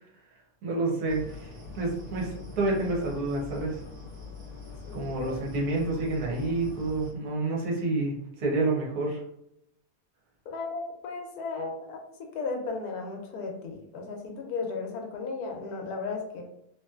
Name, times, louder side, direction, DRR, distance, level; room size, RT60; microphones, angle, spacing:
voice 1, 0.6-3.8 4.9-9.2, right 2 dB, 70° right, -3 dB, 1.4 m, -29 dB
sound 1, 1.1-7.1, left 4 dB, 45° right, 1.7 m, -43 dB
voice 2, 4.9-5.3 10.5-16.4, left 4 dB, 75° left, 2 dB, 1.1 m, -35 dB
3.0 x 2.9 x 2.3 m, 0.77 s
omnidirectional pair, 1.7 m